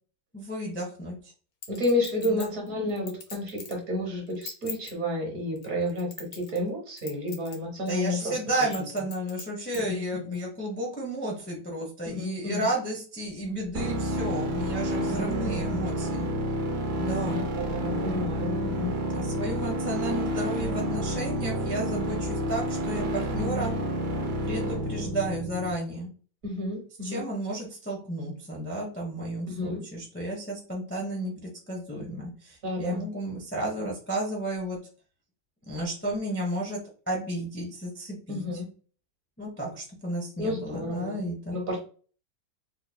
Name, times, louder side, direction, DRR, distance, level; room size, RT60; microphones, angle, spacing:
voice 1, 0.3-1.2 2.3-2.5 7.9-16.3 17.0-17.4 19.1-23.7 24.4-26.1 27.0-34.8 35.7-36.8 37.1-38.4 39.4-41.6, right 1 dB, 15° left, -3 dB, 0.3 m, -32 dB
Chink clink, 1.6-3.8 4.3-4.9 5.6-6.7 7.0-7.6 7.9-8.0 8.6-9.8 10.3-10.4, left 7 dB, 75° left, 1.5 m, -41 dB
voice 2, 1.7-8.4 9.7-10.3 12.0-12.7 15.0-15.6 17.3-19.0 26.4-27.2 29.5-29.8 32.6-33.0 38.3-38.7 40.4-41.2 41.5-41.8, left 1 dB, 50° right, 0 dB, 1.4 m, -31 dB
sound 1, 13.7-25.7, equal, 65° right, 0.9 m, -29 dB
3.9 x 3.0 x 2.2 m, 0.40 s
omnidirectional pair, 2.1 m